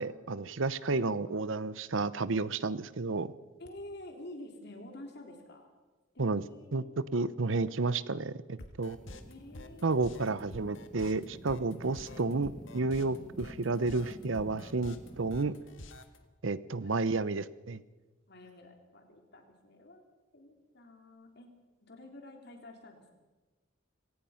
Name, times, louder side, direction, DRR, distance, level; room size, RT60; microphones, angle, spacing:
voice 1, 0.0-3.3 6.2-6.4 6.7-6.8 7.1-9.0 9.8-15.5 16.4-17.8, right 3 dB, 75° right, 16 dB, 0.8 m, -31 dB
voice 2, 3.6-5.7 6.1-6.9 9.3-10.6 12.0-12.2 16.8-17.0 18.3-21.5 21.8-23.1, left 1 dB, 55° left, 3 dB, 3.5 m, -50 dB
sound 1, 8.6-16.2, left 1 dB, 70° left, 1.7 m, -48 dB
sound 2, 8.9-15.3, equal, 5° left, 1.5 m, -51 dB
25.0 x 18.5 x 5.8 m, 1.2 s
head